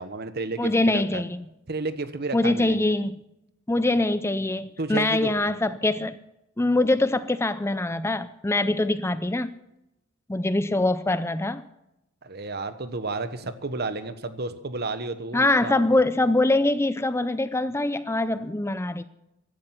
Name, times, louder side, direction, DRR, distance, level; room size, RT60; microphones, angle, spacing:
voice 1, 0.0-1.2 1.7-2.8 4.8-5.5 12.2-16.0, right 3 dB, 50° right, 11 dB, 1.3 m, -32 dB
voice 2, 0.6-1.4 2.3-3.1 3.7-6.1 6.6-9.5 10.3-11.6 15.3-19.0, left 2 dB, 15° left, 13 dB, 0.5 m, -23 dB
16.0 x 12.0 x 5.9 m, 0.87 s
head